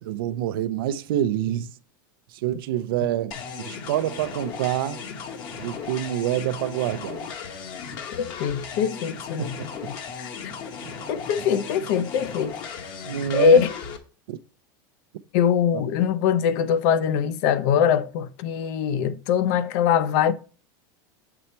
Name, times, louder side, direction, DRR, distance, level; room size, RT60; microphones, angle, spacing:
voice 1, 0.0-1.7 2.3-5.1 5.6-7.3 9.4-9.9 10.8-11.1 11.4-11.5 13.1-13.6 14.3-14.4 15.7-15.8, right 12 dB, 85° right, 0.5 m, -27 dB
sound 1, 3.3-14.0, left 6 dB, 40° left, 1.0 m, -36 dB
voice 2, 8.4-9.6 9.9-10.3 11.1-12.5 13.3-13.7 15.3-20.3, left 8 dB, 60° left, 0.6 m, -22 dB
7.0 x 4.2 x 4.4 m
supercardioid pair, 150°, 12 cm